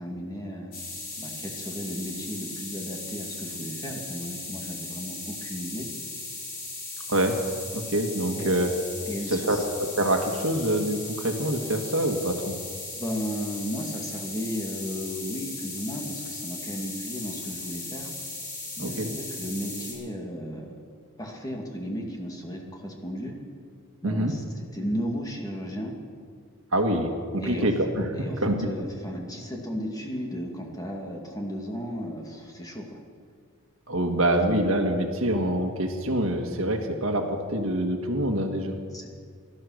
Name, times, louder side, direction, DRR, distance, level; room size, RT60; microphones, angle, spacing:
voice 1, 0.0-5.9 8.3-8.5 9.0-9.7 12.9-18.1 18.8-20.7 21.2-23.4 24.0-25.9 27.4-27.7 28.2-33.0 38.9-39.1, equal, 15° left, 1 dB, 2.1 m, -35 dB
sound 1, 0.7-19.9, left 3 dB, 45° left, 5.3 m, -37 dB
voice 2, 7.7-8.7 9.3-12.5 18.8-19.1 24.0-24.3 26.7-28.5 33.9-38.7, right 1 dB, 65° right, 4 dB, 1.7 m, -25 dB
18.5 x 12.5 x 6.4 m, 2.1 s
head